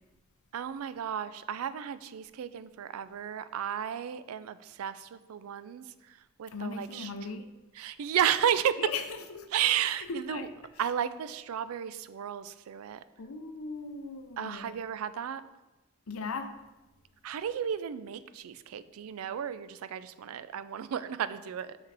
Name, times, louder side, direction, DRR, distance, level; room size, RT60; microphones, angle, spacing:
voice 1, 0.5-7.1 7.7-8.8 9.5-10.5 10.8-13.0 14.4-15.4 17.2-21.8, right 9 dB, 90° right, 14 dB, 0.4 m, -33 dB
voice 2, 6.5-7.5 8.8-9.0 9.3-9.5 10.1-10.5 13.2-14.8 16.1-16.5, left 4 dB, 85° left, 8 dB, 0.6 m, -38 dB
6.3 x 5.7 x 3.3 m, 1.1 s
head